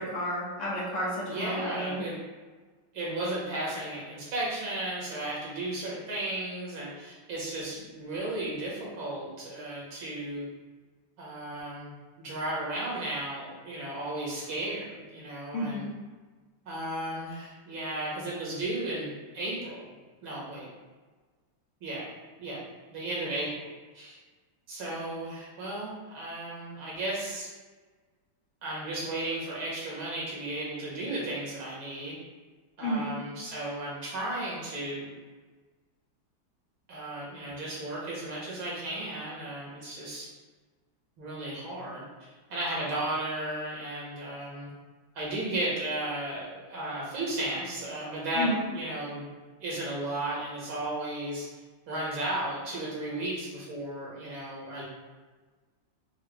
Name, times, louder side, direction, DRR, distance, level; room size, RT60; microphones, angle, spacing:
voice 1, 0.0-2.0 15.5-15.9 32.8-33.1 48.3-48.7, equal, 60° left, -6 dB, 1.7 m, -31 dB
voice 2, 1.3-2.2 2.9-10.5 11.2-15.8 16.7-19.9 20.2-20.7 21.8-22.1 22.4-22.6 22.9-23.6 23.9-24.2 24.7-27.5 28.6-32.1 32.8-35.1 36.9-40.3 41.2-42.0 42.5-44.7 45.2-48.5 48.7-49.3 49.6-51.5 51.9-54.8, right 1 dB, 75° right, -6 dB, 2.3 m, -34 dB
6.4 x 2.3 x 3.5 m, 1.3 s
omnidirectional pair, 2.2 m